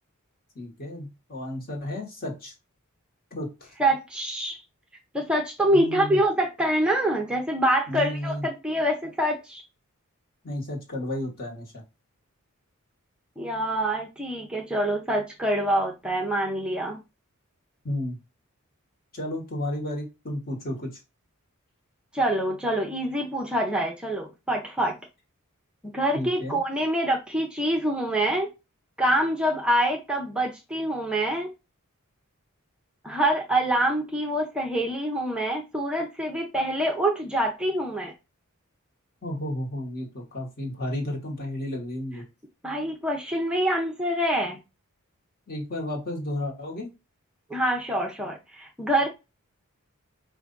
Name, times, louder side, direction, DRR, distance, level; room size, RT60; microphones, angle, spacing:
voice 1, 0.5-2.5 3.3-3.7 5.7-6.2 7.9-8.5 10.4-11.7 17.8-18.2 19.1-21.0 26.1-26.6 39.2-42.2 45.5-46.9, left 1 dB, 45° left, 1.4 m, -32 dB
voice 2, 3.8-4.6 5.1-9.6 13.4-17.0 22.1-25.0 25.9-28.5 29.0-31.5 33.0-38.1 42.6-44.6 47.5-49.1, right 1 dB, 5° right, 0.6 m, -25 dB
4.7 x 2.5 x 3.8 m
head